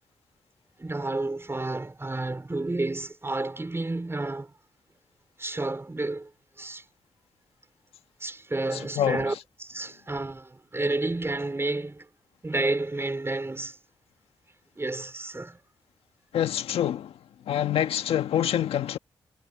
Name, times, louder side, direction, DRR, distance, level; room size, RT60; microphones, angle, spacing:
voice 1, 0.8-4.5 5.4-6.3 6.6-6.8 8.2-12.1 12.4-13.8 14.8-15.6, right 2 dB, 25° right, 5.0 m, -30 dB
voice 2, 8.7-9.4 16.3-17.2 17.5-19.0, left 10 dB, 85° left, 1.6 m, -26 dB
supercardioid pair, 50°, 10 cm